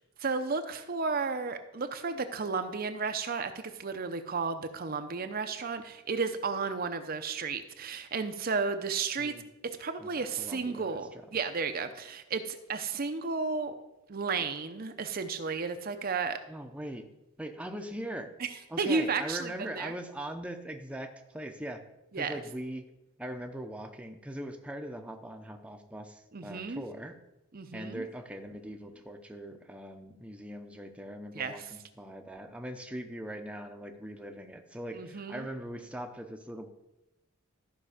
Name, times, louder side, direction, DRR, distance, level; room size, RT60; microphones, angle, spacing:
voice 1, 0.2-13.7 14.1-16.4 18.8-19.5 19.8-19.9 22.1-22.3 26.3-26.8 27.5-27.9 31.4-31.5 34.9-35.5, right 4 dB, 45° right, 8 dB, 0.7 m, -33 dB
voice 2, 10.0-11.0 14.8-14.9 16.5-17.1 17.4-18.3 18.7-21.8 22.1-22.9 23.2-27.2 27.7-36.7, right 1 dB, 5° right, 4 dB, 0.7 m, -41 dB
13.5 x 5.5 x 5.0 m, 0.91 s
head